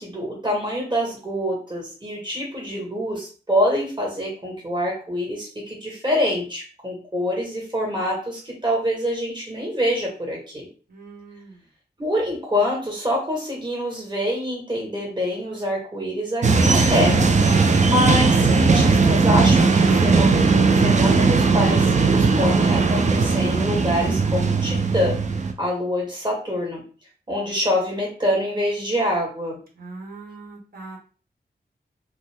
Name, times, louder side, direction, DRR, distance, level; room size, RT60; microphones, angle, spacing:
voice 1, 0.0-10.7 12.0-17.3 17.8-25.2 25.6-26.8 27.3-29.6, left 1 dB, 25° right, -2 dB, 1.1 m, -25 dB
voice 2, 10.9-11.7 29.7-31.0, right 3 dB, 60° right, -2 dB, 1.1 m, -41 dB
sound 1, 16.4-25.5, right 4 dB, 45° right, 0.4 m, -18 dB
2.6 x 2.2 x 3.3 m, 0.38 s
wide cardioid pair, 90°, 18 cm